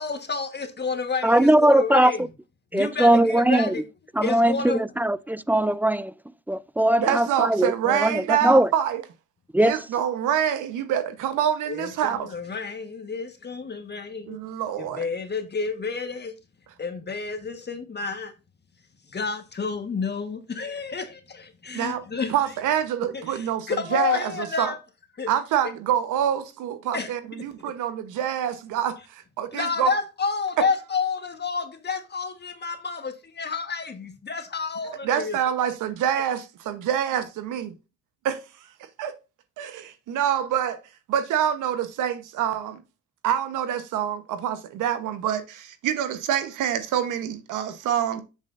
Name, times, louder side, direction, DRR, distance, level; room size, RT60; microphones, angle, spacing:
voice 1, 0.0-2.2 2.7-3.8 4.2-4.8 11.7-14.4 14.8-16.3 16.8-18.3 19.1-22.3 23.1-24.8 25.2-25.3 26.9-27.1 29.5-35.4, left 5 dB, 35° left, 1.5 m, -30 dB
voice 2, 1.2-2.1 2.7-3.7 4.2-6.1 6.5-8.7 9.5-9.8, right 1 dB, 5° right, 0.3 m, -20 dB
voice 3, 7.0-9.0 9.6-12.3 14.3-15.0 21.7-22.0 22.3-24.7 25.3-28.9 29.4-29.9 35.0-36.4 36.7-37.7 38.2-38.4 39.0-39.1 39.6-39.8 40.1-40.8 41.1-42.7 43.2-45.4 45.8-48.2, right 9 dB, 90° right, 1.1 m, -26 dB
7.6 x 7.1 x 2.6 m
cardioid pair, 90°, 30 cm